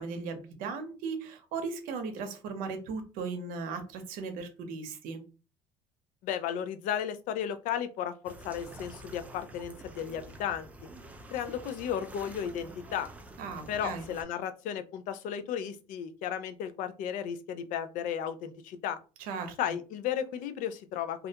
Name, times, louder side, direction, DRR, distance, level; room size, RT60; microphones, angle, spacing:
voice 1, 0.0-5.2 13.4-14.1 19.3-19.6, right 4 dB, 80° right, 6 dB, 0.7 m, -37 dB
voice 2, 6.2-10.7 11.3-13.1 13.7-19.0 19.6-21.3, left 9 dB, 65° left, 10 dB, 0.4 m, -34 dB
sound 1, 8.2-14.2, right 1 dB, 10° right, 0.3 m, -48 dB
2.4 x 2.1 x 2.7 m, 0.34 s
cardioid pair, 130°, 14 cm